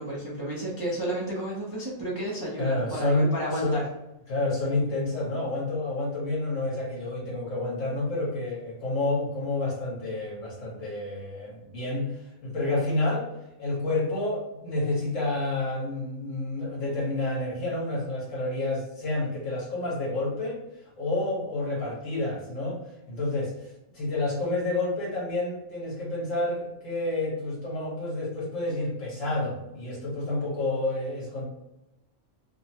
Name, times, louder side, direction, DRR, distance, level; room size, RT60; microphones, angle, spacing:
voice 1, 0.0-3.9, right 1 dB, 30° right, -6 dB, 0.4 m, -31 dB
voice 2, 2.6-3.8 4.3-13.3 13.6-20.6 21.0-22.8 23.1-31.4, left 2 dB, 75° left, -4 dB, 1.5 m, -29 dB
3.1 x 2.1 x 2.7 m, 0.91 s
omnidirectional pair, 1.3 m